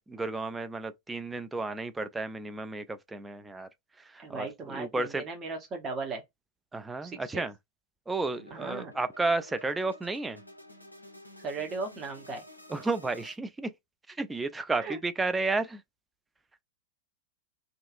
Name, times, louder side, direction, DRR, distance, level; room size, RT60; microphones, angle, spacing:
voice 1, 0.0-3.7 4.0-5.2 6.7-7.5 8.1-10.4 12.7-13.7 14.1-15.8, right 3 dB, 10° right, 0.3 m, -32 dB
voice 2, 4.2-6.2 7.0-7.5 8.5-8.9 11.4-12.4 14.8-15.0, right 4 dB, 25° right, 0.8 m, -37 dB
sound 1, 8.3-13.4, equal, 85° left, 0.4 m, -51 dB
2.6 x 2.3 x 2.4 m
figure-of-eight pair, 90°, 0 cm